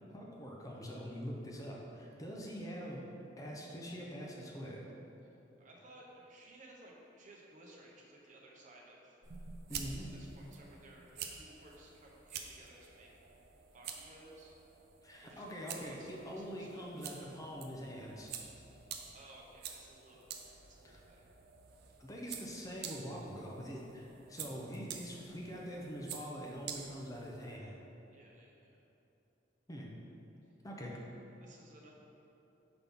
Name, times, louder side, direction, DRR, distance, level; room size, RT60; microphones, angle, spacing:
voice 1, 0.1-3.0 3.4-4.8 9.7-10.1 15.0-18.3 20.8-21.0 22.0-27.8 29.7-29.9 30.6-31.0, equal, 20° left, -3 dB, 0.7 m, -44 dB
voice 2, 5.6-9.2 10.1-13.1 13.7-14.5 15.2-16.8 19.1-21.3 28.1-28.8 31.4-31.9, right 1 dB, 45° right, -2 dB, 0.9 m, -57 dB
sound 1, 9.2-27.6, right 7 dB, 60° right, 0.5 m, -49 dB
5.9 x 5.4 x 3.6 m, 2.9 s
head